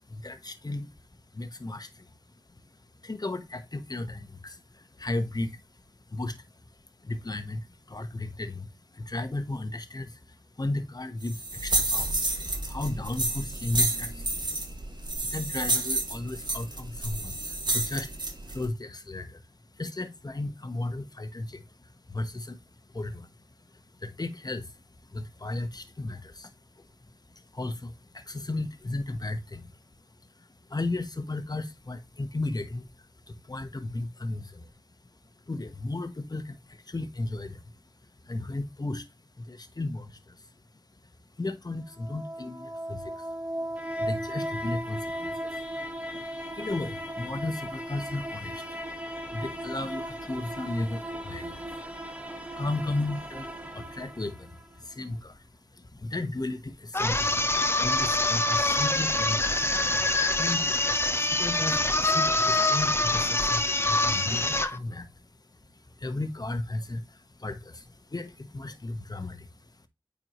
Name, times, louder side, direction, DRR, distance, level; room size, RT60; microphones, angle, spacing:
voice 1, 0.1-0.9 1.3-2.1 3.0-5.6 6.1-6.5 7.0-12.2 12.7-14.5 15.3-19.4 19.7-23.4 23.7-24.8 25.1-26.9 27.3-29.8 30.4-34.7 35.5-37.7 38.0-39.1 39.4-40.5 41.4-59.8 60.2-60.7 60.9-69.9, left 2 dB, 50° left, 1.3 m, -35 dB
sound 1, 11.2-18.7, right 2 dB, 55° right, 2.0 m, -30 dB
sound 2, 41.8-54.8, equal, 15° right, 1.8 m, -37 dB
sound 3, 56.9-64.8, left 2 dB, 30° left, 1.0 m, -25 dB
9.2 x 4.8 x 3.1 m
wide cardioid pair, 50°, 9 cm